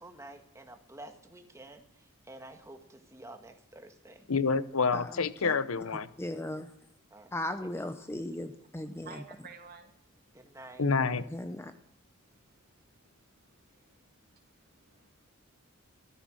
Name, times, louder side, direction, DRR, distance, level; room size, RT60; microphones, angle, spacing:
voice 1, 0.0-1.8 2.3-4.3 7.1-7.3 7.6-7.7 10.3-10.8, right 1 dB, 15° right, 5 dB, 1.6 m, -49 dB
voice 2, 4.3-6.1 10.8-11.2, left 5 dB, 75° left, 15 dB, 0.8 m, -28 dB
voice 3, 4.9-5.5 6.2-6.7 7.3-9.2 11.3-11.7, left 1 dB, 10° left, 9 dB, 0.7 m, -37 dB
voice 4, 8.8-9.9 10.3-10.6 12.3-12.6 12.9-15.1, right 5 dB, 45° right, 5 dB, 2.4 m, -54 dB
13.5 x 13.0 x 6.4 m, 0.72 s
head